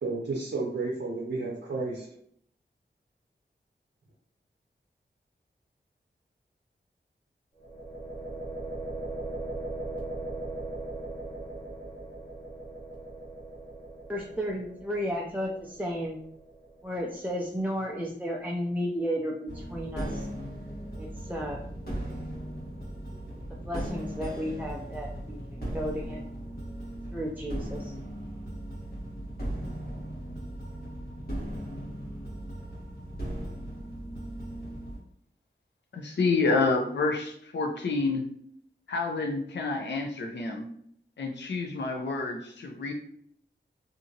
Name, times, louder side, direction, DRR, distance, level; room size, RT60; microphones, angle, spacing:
voice 1, 0.0-2.1, right 3 dB, 75° right, -4 dB, 0.6 m, -32 dB
sound 1, 7.6-17.4, right 2 dB, 25° left, 0.9 m, -39 dB
voice 2, 14.1-16.2 16.8-20.3 21.0-21.6 23.6-26.3 27.1-27.9, equal, 10° right, -2 dB, 0.4 m, -33 dB
sound 2, 19.5-35.0, right 1 dB, 55° left, 1.3 m, -37 dB
voice 3, 35.9-38.2 38.9-40.7 41.2-42.9, left 3 dB, 70° left, 2 dB, 0.5 m, -28 dB
2.7 x 2.5 x 2.7 m, 0.66 s
wide cardioid pair, 85°, 19 cm